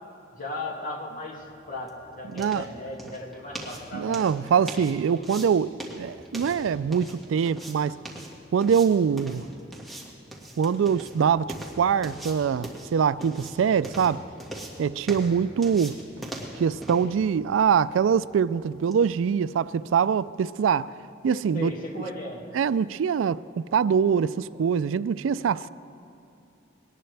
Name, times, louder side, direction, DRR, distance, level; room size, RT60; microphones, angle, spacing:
voice 1, 0.3-4.2 21.5-22.4, left 2 dB, 45° left, 2.1 m, -36 dB
sound 1, 1.2-19.0, right 1 dB, ahead, 1.7 m, -42 dB
voice 2, 2.3-2.6 3.9-8.0 8.5-9.4 10.6-11.5 11.8-14.2 14.8-16.0 16.6-20.9 21.2-21.7 22.5-25.7, right 7 dB, 80° right, 0.3 m, -24 dB
21.5 x 18.5 x 3.4 m
head